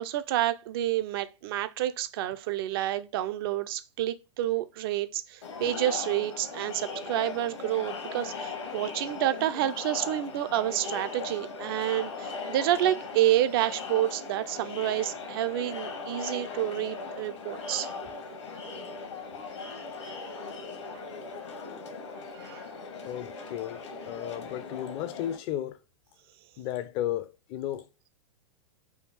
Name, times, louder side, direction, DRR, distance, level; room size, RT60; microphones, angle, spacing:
voice 1, 0.0-17.9 20.9-21.0 22.3-22.7, right 13 dB, 50° right, 0.4 m, -29 dB
Crowd, 5.4-25.4, left 4 dB, 70° left, 1.0 m, -39 dB
voice 2, 23.0-25.8 26.6-27.9, left 12 dB, 35° left, 0.4 m, -34 dB
3.5 x 2.4 x 3.2 m
figure-of-eight pair, 100°, 15 cm